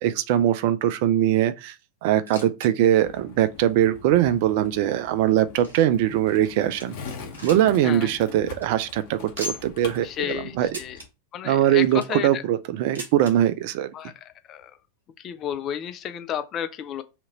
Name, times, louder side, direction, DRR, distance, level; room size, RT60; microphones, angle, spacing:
voice 1, 0.0-1.7 2.0-7.0 7.4-10.7 11.4-13.9, right 12 dB, 50° right, 0.3 m, -21 dB
sound 1, 2.0-2.7 3.0-3.1 3.8-3.9 4.6-6.0 6.5-6.6 6.8-7.8 8.1-8.2 8.5-8.7 9.4-9.8 10.7-11.1 11.7-12.2 12.9-13.3 14.3-14.4 14.6-14.7 15.5-15.6, left 1 dB, 70° right, 1.0 m, -38 dB
Skateboard, 3.0-11.0, left 4 dB, 50° left, 0.9 m, -42 dB
voice 2, 7.8-8.2 10.0-11.0 11.3-12.4 13.9-14.1 14.5-14.8 15.2-17.0, left 9 dB, 30° left, 0.4 m, -32 dB
2.8 x 2.5 x 4.0 m
figure-of-eight pair, 90°, 0 cm